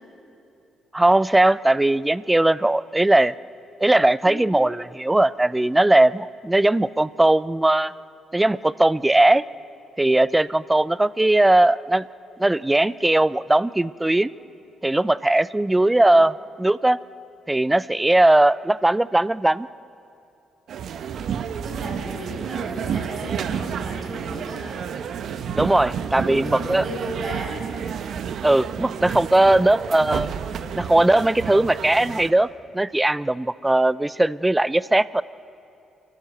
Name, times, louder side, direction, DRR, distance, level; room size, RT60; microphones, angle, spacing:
voice 1, 0.9-3.3 3.8-7.9 8.3-9.4 10.0-12.0 12.4-14.3 14.8-17.0 17.5-19.7 25.5-26.8 28.4-30.3 30.7-32.5 32.7-35.2, right 1 dB, 10° right, 19 dB, 0.4 m, -19 dB
voice 2, 15.7-16.1 21.6-24.8 26.2-27.6, right 1 dB, 45° right, 0 dB, 6.0 m, -35 dB
sound 1, 20.7-32.3, right 7 dB, 65° right, 1.0 m, -30 dB
29.0 x 12.5 x 8.1 m, 2.7 s
cardioid pair, 90°, 0 cm